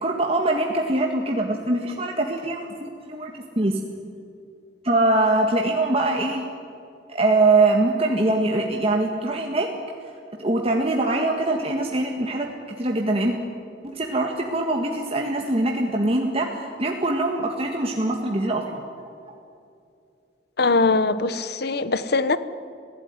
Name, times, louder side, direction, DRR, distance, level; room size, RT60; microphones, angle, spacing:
voice 1, 0.0-3.8 4.8-6.4 7.1-9.7 10.4-12.5 12.8-13.3 13.8-18.8, right 2 dB, 35° right, 1 dB, 1.8 m, -23 dB
voice 2, 20.6-22.4, left 3 dB, 60° left, 14 dB, 1.1 m, -21 dB
27.0 x 16.5 x 9.6 m, 2.5 s
head